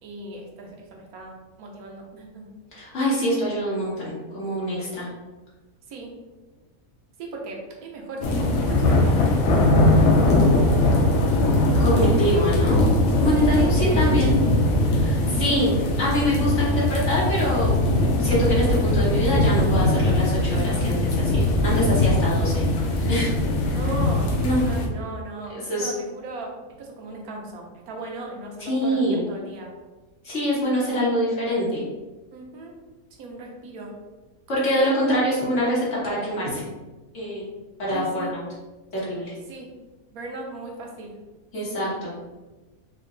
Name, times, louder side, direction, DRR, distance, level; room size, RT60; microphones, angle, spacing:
voice 1, 0.0-2.5 5.9-6.1 7.2-10.1 11.8-13.0 13.4-14.1 15.3-15.4 23.7-26.5 26.8-29.7 32.3-32.7 33.2-33.9 37.9-38.3 39.5-39.7 40.1-41.2, right 2 dB, 85° right, 0 dB, 1.2 m, -38 dB
voice 2, 2.7-5.1 11.8-12.8 13.2-14.4 14.9-17.8 18.2-22.6 22.9-23.3 24.3-24.6 25.7-25.9 28.6-29.3 30.2-31.8 34.5-36.6 37.1-37.4 37.8-38.4 39.0-39.3 41.5-42.2, equal, 55° left, -7 dB, 1.6 m, -24 dB
sound 1, 8.2-24.9, left 1 dB, 75° left, 1.0 m, -20 dB
3.8 x 2.2 x 3.7 m, 1.2 s
omnidirectional pair, 1.5 m